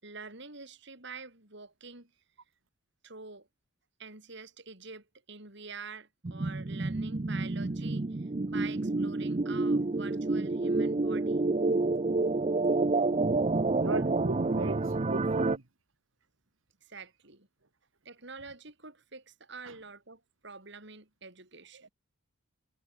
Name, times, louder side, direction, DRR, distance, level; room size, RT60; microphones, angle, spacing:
voice 1, 0.0-2.1 3.0-3.5 4.0-11.4 16.8-17.5 18.0-21.9, right 4 dB, 60° right, 6.3 m, -47 dB
sound 1, 6.2-15.6, right 3 dB, 30° right, 0.6 m, -29 dB
voice 2, 13.8-15.6 19.6-19.8 21.7-21.9, right 3 dB, 80° right, 1.7 m, -37 dB
head